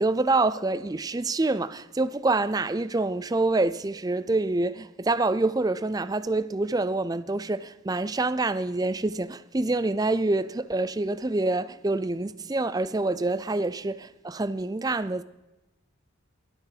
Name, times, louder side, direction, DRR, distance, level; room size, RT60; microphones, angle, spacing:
voice 1, 0.0-15.2, right 2 dB, 20° right, 0.4 m, -26 dB
17.5 x 12.5 x 5.0 m
head